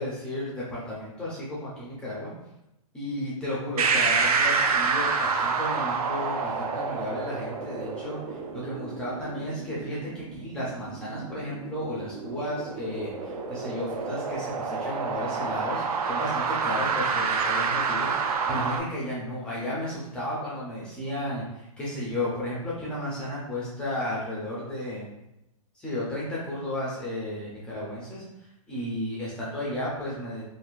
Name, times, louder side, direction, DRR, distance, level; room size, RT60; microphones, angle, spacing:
voice 1, 0.0-2.3 2.9-25.1 25.7-28.2 28.7-30.4, left 1 dB, 5° left, -7 dB, 0.3 m, -33 dB
sound 1, 3.8-18.8, right 5 dB, 85° right, 0.5 m, -28 dB
3.7 x 2.4 x 2.4 m, 0.87 s
hypercardioid pair, 160°, 19 cm